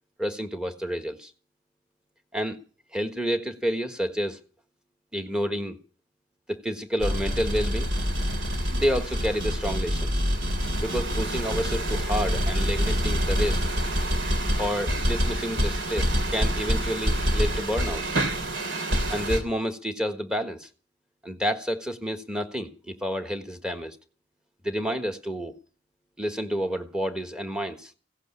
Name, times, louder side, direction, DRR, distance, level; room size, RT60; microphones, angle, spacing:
voice 1, 0.2-1.3 2.3-2.6 2.9-4.4 5.1-5.8 6.5-7.9 8.7-10.2 10.8-13.6 14.6-18.2 19.1-20.7 21.2-24.0 24.6-25.5 26.2-27.9, equal, 5° right, 1.4 m, -29 dB
sound 1, 7.0-19.4, equal, 70° right, 3.2 m, -26 dB
16.5 x 8.2 x 9.7 m
head